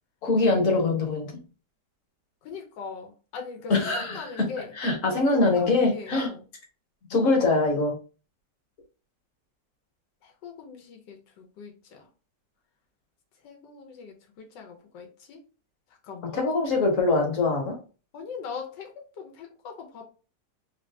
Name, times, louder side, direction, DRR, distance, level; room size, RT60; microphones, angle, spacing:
voice 1, 0.2-1.4 3.7-4.5 4.8-6.3 7.1-7.9 16.3-17.7, left 3 dB, 50° left, 1 dB, 1.4 m, -23 dB
voice 2, 2.4-4.7 5.1-6.4 10.2-12.1 13.4-15.4 16.0-16.4 18.1-20.1, left 5 dB, 90° left, 3 dB, 1.4 m, -41 dB
3.6 x 2.6 x 3.2 m, 0.35 s
omnidirectional pair, 1.9 m